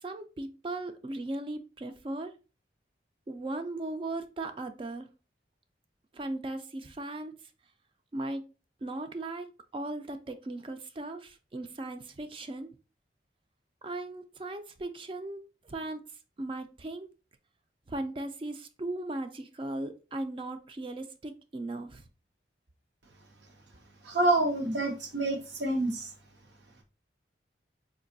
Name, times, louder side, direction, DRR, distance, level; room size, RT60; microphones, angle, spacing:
voice 1, 0.0-2.3 3.3-5.1 6.1-7.3 8.1-8.4 8.8-12.7 13.8-16.0 16.4-17.1 17.9-22.1, right 2 dB, 30° right, 0.3 m, -37 dB
voice 2, 24.0-26.1, right 2 dB, 75° right, 0.8 m, -27 dB
3.9 x 2.5 x 2.5 m
head